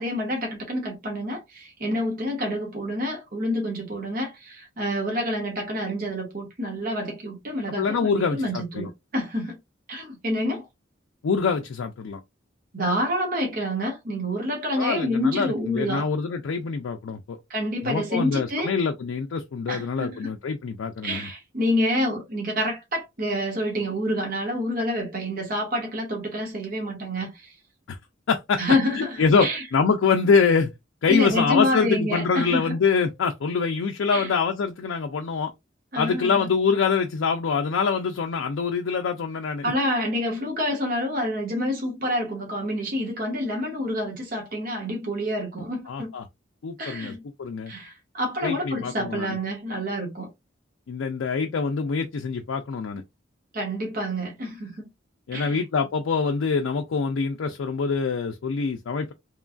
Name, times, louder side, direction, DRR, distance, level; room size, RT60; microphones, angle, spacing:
voice 1, 0.0-9.6 9.9-10.7 12.7-16.1 17.5-18.7 19.7-20.3 21.0-27.5 28.6-29.6 31.1-32.8 34.1-34.3 35.9-36.5 39.6-46.1 46.8-47.2 47.7-50.3 53.5-54.9 55.3-55.6, equal, 50° right, 1.1 m, -28 dB
voice 2, 7.8-8.9 11.2-12.2 14.8-17.4 17.8-21.3 27.9-28.0 28.3-28.6 29.0-30.7 31.0-35.5 36.0-39.7 45.9-46.2 46.6-47.1 47.4-47.7 48.4-49.4 50.9-53.0 55.3-59.1, left 5 dB, 90° left, 0.4 m, -25 dB
3.0 x 2.2 x 2.4 m
head